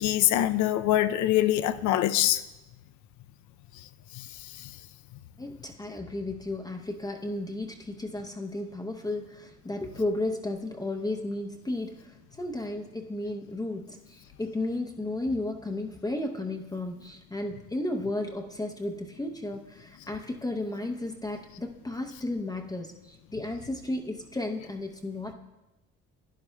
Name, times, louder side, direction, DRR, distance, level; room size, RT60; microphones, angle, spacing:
voice 1, 0.0-2.4 4.1-4.7, left 13 dB, 80° left, 0.5 m, -24 dB
voice 2, 5.4-25.3, left 2 dB, 15° left, 0.6 m, -34 dB
12.0 x 10.0 x 2.2 m
cardioid pair, 85°, 29 cm